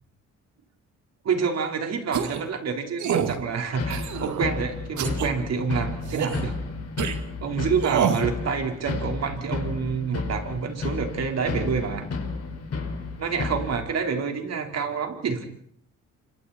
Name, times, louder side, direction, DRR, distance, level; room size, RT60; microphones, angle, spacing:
voice 1, 1.2-6.5 7.4-12.0 13.2-15.5, right 6 dB, 55° right, 3 dB, 4.6 m, -27 dB
sound 1, 2.1-2.5 3.0-3.4 3.9-4.4 5.0-5.3 6.0-6.4 7.0-7.2 7.8-8.3, right 7 dB, 75° right, 2.3 m, -27 dB
sound 2, 3.7-13.8, left 4 dB, 55° left, 5.4 m, -32 dB
28.5 x 25.5 x 4.5 m, 0.66 s
cardioid pair, 90°, 30 cm